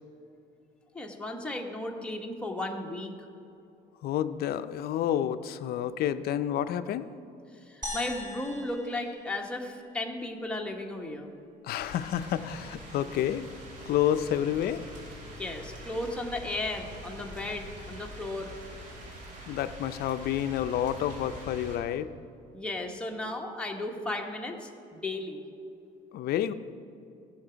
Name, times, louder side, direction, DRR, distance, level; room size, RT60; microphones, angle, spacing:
voice 1, 0.9-3.1 7.7-11.3 15.4-18.5 22.5-25.4, left 2 dB, 5° left, 1 dB, 1.1 m, -35 dB
voice 2, 4.0-7.1 11.6-13.4 13.9-14.8 19.5-22.1 26.1-26.5, left 10 dB, 65° left, 12 dB, 0.5 m, -29 dB
sound 1, 7.8-10.3, left 1 dB, 20° right, 2.5 m, -41 dB
sound 2, 11.8-21.8, equal, 50° right, 2.5 m, -44 dB
16.5 x 5.8 x 5.0 m, 2.7 s
cardioid pair, 110°, 17 cm